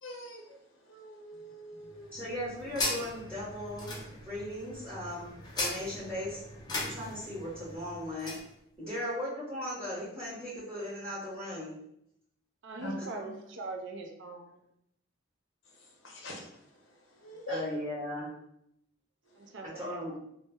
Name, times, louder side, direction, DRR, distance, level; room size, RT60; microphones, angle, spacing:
voice 1, 0.0-2.2 8.8-9.1 12.8-12.9 13.2-13.3 15.7-17.6 19.2-19.5, equal, 75° left, 0 dB, 0.6 m, -44 dB
sound 1, 1.9-8.5, left 2 dB, 20° left, 0.5 m, -39 dB
voice 2, 2.1-6.4 6.8-8.3 8.8-11.7 13.0-13.1 17.5-18.3 19.6-20.1, left 1 dB, 15° right, -12 dB, 0.8 m, -37 dB
voice 3, 12.6-14.6 19.4-20.0, right 3 dB, 70° right, 3 dB, 0.4 m, -41 dB
2.1 x 2.0 x 3.4 m, 0.77 s
head